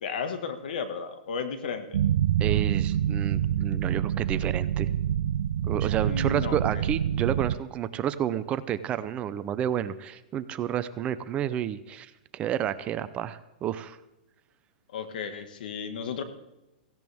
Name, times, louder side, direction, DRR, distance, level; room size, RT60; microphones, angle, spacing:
voice 1, 0.0-2.0 6.0-6.6 14.9-16.2, left 6 dB, 70° left, 8 dB, 1.8 m, -34 dB
sound 1, 1.9-7.6, right 10 dB, 75° right, 0.5 m, -26 dB
voice 2, 2.4-4.9 5.6-14.0, right 10 dB, 25° right, 13 dB, 0.6 m, -30 dB
16.5 x 16.0 x 3.6 m, 0.95 s
hypercardioid pair, 145°, 5 cm